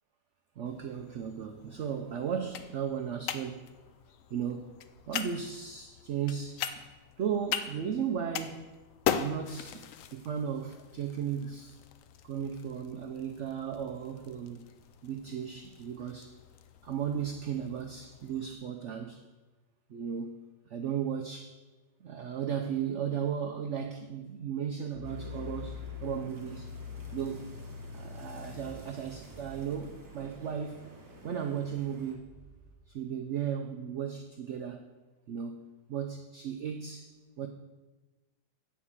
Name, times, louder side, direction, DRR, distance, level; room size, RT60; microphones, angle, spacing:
voice 1, 0.6-3.7 4.3-4.7 5.1-6.7 7.2-8.7 9.1-11.8 12.2-14.7 15.0-16.3 16.8-19.2 19.9-20.4 20.7-21.5 22.0-26.7 27.1-27.5 27.9-30.9 31.2-32.3 32.9-34.9 35.3-37.1 37.4-37.5, right 8 dB, 80° right, 5 dB, 0.6 m, -35 dB
sound 1, 0.7-18.5, left 9 dB, 70° left, 0.7 m, -41 dB
sound 2, 24.9-32.8, left 4 dB, 60° right, 1.5 m, -45 dB
sound 3, 25.0-32.1, right 2 dB, 15° right, 0.9 m, -53 dB
8.7 x 4.7 x 7.2 m, 1.2 s
omnidirectional pair, 1.9 m